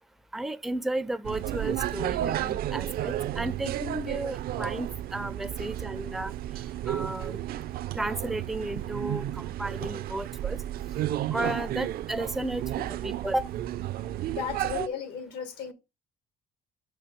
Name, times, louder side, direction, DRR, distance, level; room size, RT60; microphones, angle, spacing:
voice 1, 0.3-6.3 6.9-7.4 7.9-10.6 11.3-13.5, right 1 dB, ahead, 0.4 m, -33 dB
sound 1, 1.2-14.9, right 13 dB, 60° right, 0.5 m, -32 dB
voice 2, 14.3-15.7, left 7 dB, 80° left, 1.6 m, -35 dB
5.6 x 4.5 x 5.1 m
cardioid pair, 110°, 17 cm